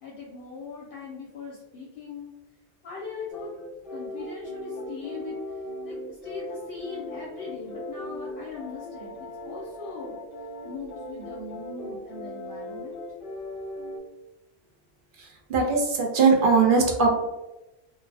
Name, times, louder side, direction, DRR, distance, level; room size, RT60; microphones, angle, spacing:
voice 1, 0.0-2.3 2.8-3.5 3.9-5.4 5.8-10.2 10.6-13.0, left 4 dB, 65° left, -4 dB, 0.7 m, -40 dB
sound 1, 3.3-14.0, left 1 dB, 20° left, 1.1 m, -38 dB
voice 2, 15.2-17.1, right 4 dB, 60° right, 1 dB, 0.6 m, -21 dB
2.5 x 2.1 x 3.2 m, 0.98 s
omnidirectional pair, 1.1 m